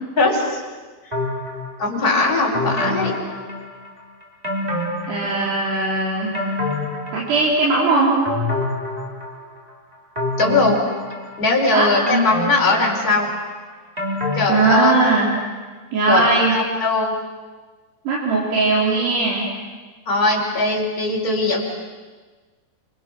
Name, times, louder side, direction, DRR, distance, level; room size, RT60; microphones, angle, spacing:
voice 1, 0.2-0.6 1.8-3.1 10.4-10.8 11.4-13.3 14.4-14.9 16.1-17.1 20.1-21.6, left 2 dB, 20° left, -2 dB, 5.0 m, -19 dB
sound 1, 1.1-1.9 2.5-4.0 4.4-5.8 6.1-7.8 8.2-9.6 10.1-11.6 12.1-15.3 15.6-15.7, left 1 dB, 10° right, 3.8 m, -27 dB
voice 2, 5.1-6.4 7.1-8.2 11.7-12.0 14.5-15.3 15.9-16.5 18.1-19.4, right 3 dB, 70° right, -6 dB, 5.9 m, -19 dB
29.0 x 28.0 x 6.2 m, 1.3 s
omnidirectional pair, 4.9 m